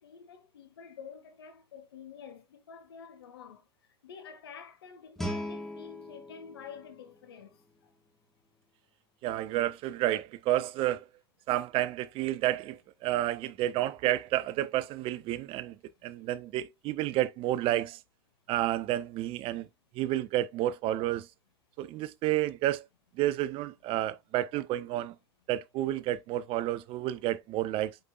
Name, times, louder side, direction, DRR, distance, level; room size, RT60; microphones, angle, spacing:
voice 1, 0.0-7.9 16.1-16.2, left 6 dB, 75° left, 1.6 m, -49 dB
Guitar, 5.2-7.9, equal, ahead, 1.6 m, -40 dB
voice 2, 9.2-11.1 11.5-15.8 16.0-18.0 18.5-19.7 19.9-21.3 21.8-22.9 23.2-25.2 25.5-28.0, right 14 dB, 45° right, 0.6 m, -30 dB
7.8 x 5.2 x 2.4 m
hypercardioid pair, 90°, 13 cm